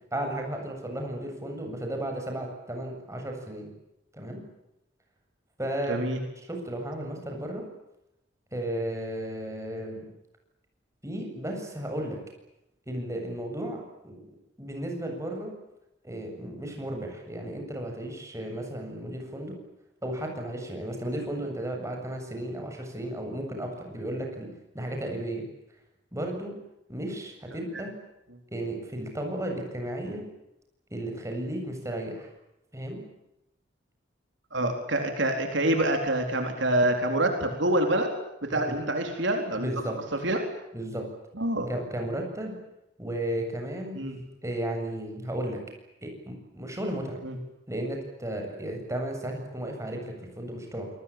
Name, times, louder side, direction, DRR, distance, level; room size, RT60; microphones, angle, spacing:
voice 1, 0.1-3.7 4.1-4.4 5.6-6.0 6.4-7.6 8.5-10.1 11.0-12.2 12.9-14.3 14.6-15.5 16.0-19.6 20.0-24.5 24.7-25.4 26.1-26.5 26.9-27.9 28.5-30.2 30.9-32.3 32.7-33.0 38.5-38.8 39.5-40.0 40.7-41.0 41.7-42.5 43.0-44.0 44.4-45.6 46.0-47.2 47.7-50.9, right 1 dB, 15° right, 3 dB, 7.7 m, -34 dB
voice 2, 5.9-6.2 34.5-38.1 38.4-39.7 40.2-40.4 41.4-41.7 43.9-44.2 47.2-47.3, right 1 dB, 70° right, 4 dB, 4.1 m, -26 dB
27.5 x 20.5 x 8.8 m, 0.87 s
head